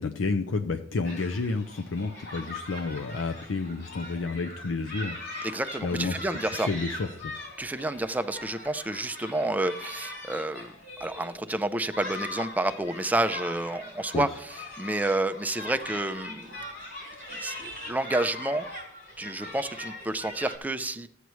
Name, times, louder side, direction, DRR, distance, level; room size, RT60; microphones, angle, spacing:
voice 1, 0.0-5.5 5.8-6.2 6.5-7.3 14.1-14.3, left 3 dB, 85° left, 7 dB, 0.5 m, -30 dB
sound 1, 1.0-20.6, left 2 dB, 65° left, 3.4 m, -41 dB
voice 2, 5.4-6.7 7.6-10.7 11.0-14.3 14.8-16.5 17.4-18.7 19.2-21.1, right 2 dB, 10° right, 10 dB, 0.4 m, -29 dB
14.5 x 8.1 x 3.1 m, 0.73 s
head